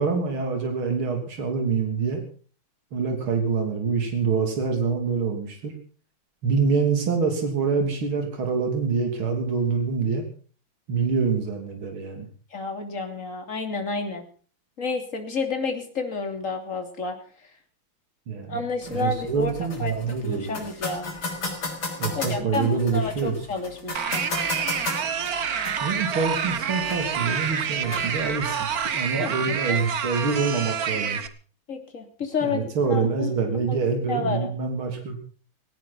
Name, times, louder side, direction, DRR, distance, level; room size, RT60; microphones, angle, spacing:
voice 1, 0.0-2.2 2.9-5.8 6.4-10.3 10.9-12.3 18.3-18.6 18.9-20.6 22.0-23.4 25.8-31.2 32.4-35.2, right 5 dB, 70° right, 4 dB, 4.0 m, -25 dB
voice 2, 12.5-14.2 14.8-17.2 18.5-19.5 19.8-21.0 22.1-24.3 29.2-29.8 31.7-33.3 33.7-33.8 34.1-34.6, left 4 dB, 35° left, 5 dB, 3.2 m, -30 dB
sound 1, 18.8-28.8, left 3 dB, 80° left, 5.6 m, -36 dB
sound 2, 23.9-31.3, right 7 dB, 50° right, 1.5 m, -28 dB
18.0 x 17.5 x 4.2 m, 0.41 s
omnidirectional pair, 2.4 m